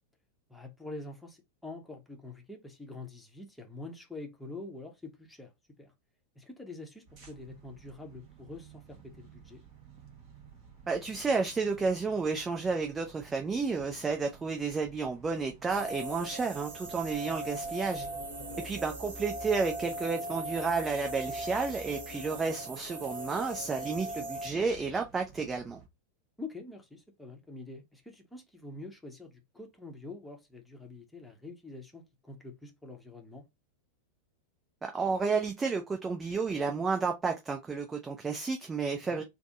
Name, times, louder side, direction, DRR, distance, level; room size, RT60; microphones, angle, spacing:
voice 1, 0.5-5.5 5.8-5.9 6.4-9.6 18.4-18.8 26.4-33.4 39.0-39.2, left 2 dB, 5° left, 0.8 m, -46 dB
sound 1, 7.1-25.9, right 4 dB, 40° right, 1.1 m, -53 dB
voice 2, 10.9-18.1 18.6-25.8 34.8-39.2, right 4 dB, 15° right, 0.5 m, -31 dB
sound 2, 15.7-24.5, right 1 dB, 55° right, 1.2 m, -39 dB
3.5 x 2.0 x 3.5 m
figure-of-eight pair, 90°, 0 cm